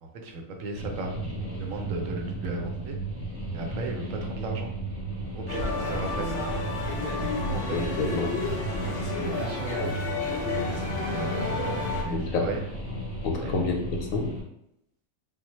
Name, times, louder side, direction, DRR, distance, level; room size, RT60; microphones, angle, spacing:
voice 1, 0.0-3.0 3.5-4.7 5.3-6.3 7.2-7.8 8.9-10.2 11.1-12.6 13.4-13.5, right 2 dB, 75° right, 3 dB, 1.0 m, -36 dB
sound 1, 0.7-14.4, right 2 dB, 20° left, 0.8 m, -34 dB
sound 2, 5.5-12.0, left 3 dB, 50° left, 0.8 m, -31 dB
voice 2, 7.4-8.3 12.1-12.5 13.2-14.3, left 3 dB, 80° left, 2 dB, 1.0 m, -29 dB
3.8 x 2.0 x 3.0 m, 0.78 s
omnidirectional pair, 1.4 m